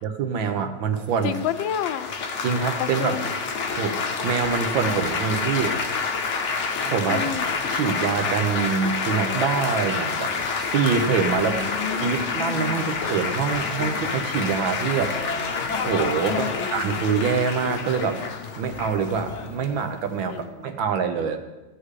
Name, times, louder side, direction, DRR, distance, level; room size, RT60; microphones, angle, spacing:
voice 1, 0.0-1.4 2.4-3.2 3.8-4.0 4.2-5.8 6.8-7.2 7.7-10.3 10.6-11.5 12.0-15.2 15.9-18.2 18.6-21.4, right 6 dB, 90° right, 6 dB, 1.7 m, -25 dB
voice 2, 1.2-2.1 2.8-3.2 7.1-7.5 11.3-12.9 16.3-16.7 20.3-20.7, left 9 dB, 85° left, 11 dB, 1.3 m, -30 dB
Laughter / Applause / Chatter, 1.3-20.4, left 5 dB, 60° left, 0.8 m, -28 dB
14.5 x 9.8 x 3.3 m, 1.1 s
omnidirectional pair, 2.1 m